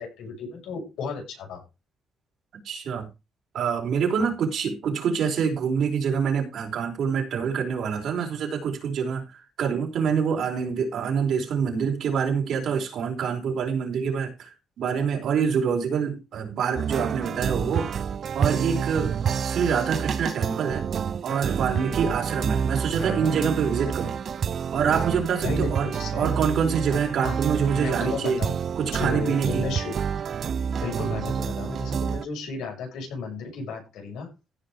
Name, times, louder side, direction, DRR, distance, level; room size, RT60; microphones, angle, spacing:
voice 1, 0.0-1.6 4.2-4.3 25.4-26.3 27.2-27.4 27.7-28.6 28.9-29.9 30.8-34.3, left 4 dB, 90° left, 6.7 m, -33 dB
voice 2, 2.6-3.1 3.5-14.5 14.8-17.9 18.3-19.2 19.4-20.8 21.2-24.2 24.7-25.9 26.1-28.4 28.8-29.7, right 6 dB, 70° right, 4.7 m, -26 dB
sound 1, 16.8-32.3, right 7 dB, 55° right, 0.6 m, -28 dB
16.0 x 5.8 x 4.8 m
cardioid pair, 90°, 0 cm